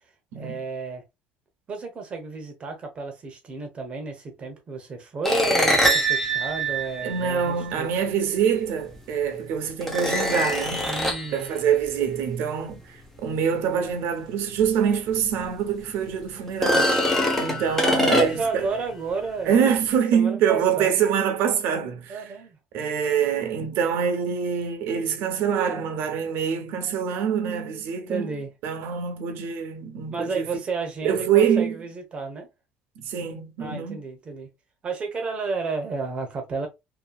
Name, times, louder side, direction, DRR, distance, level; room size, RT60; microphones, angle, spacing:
voice 1, 0.3-1.0 1.7-7.9 10.9-11.5 17.8-19.6 20.1-21.0 22.1-22.6 28.1-28.5 30.1-32.5 33.1-33.3 33.6-34.5 34.8-36.7, right 4 dB, 30° right, 0.8 m, -32 dB
sound 1, 5.2-7.7 8.9-9.0 9.8-11.4 14.6-14.7 15.2-15.3 16.5-18.6, equal, 5° left, 0.6 m, -23 dB
voice 2, 7.0-10.9 11.3-17.1 17.4-18.7 19.5-22.3 22.7-28.3 28.6-30.5 31.0-31.8 33.0-34.0, right 7 dB, 65° right, 0.8 m, -25 dB
2.7 x 2.7 x 2.3 m
cardioid pair, 150°, 4 cm